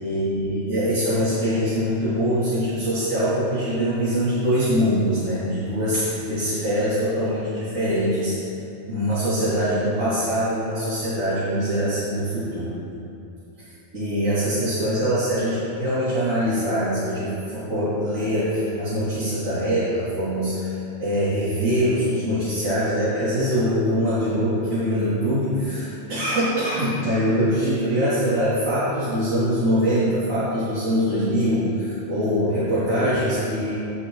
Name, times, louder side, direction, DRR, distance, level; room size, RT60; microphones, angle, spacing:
voice 1, 0.0-8.4 8.9-12.8 13.6-33.7, equal, 80° right, -12 dB, 3.0 m, -23 dB
8.6 x 8.5 x 3.9 m, 2.7 s
omnidirectional pair, 1.4 m